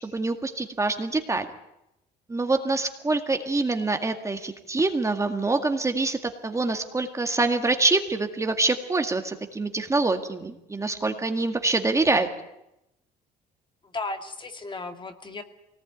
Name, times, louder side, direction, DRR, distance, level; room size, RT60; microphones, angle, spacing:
voice 1, 0.0-1.5 2.3-12.3, right 3 dB, 15° right, 6 dB, 2.0 m, -25 dB
voice 2, 13.8-15.4, left 3 dB, 30° left, 6 dB, 2.4 m, -35 dB
24.0 x 19.0 x 9.4 m, 0.88 s
cardioid pair, 110°, 17 cm